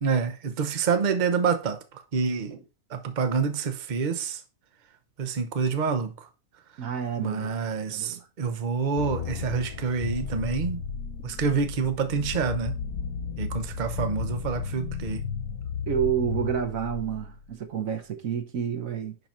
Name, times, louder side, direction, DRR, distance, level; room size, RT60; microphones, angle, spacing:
voice 1, 0.0-1.8 2.1-2.6 2.9-4.4 5.2-6.1 7.2-10.8 11.2-12.7 13.4-15.2, right 5 dB, 35° right, 0.9 m, -27 dB
voice 2, 6.8-7.6 7.9-8.3 15.9-19.2, right 8 dB, 65° right, 1.3 m, -29 dB
sound 1, 9.0-11.7, left 8 dB, 45° left, 1.0 m, -38 dB
sound 2, 10.0-17.5, left 5 dB, 75° left, 1.3 m, -33 dB
11.0 x 4.0 x 4.4 m
omnidirectional pair, 1.6 m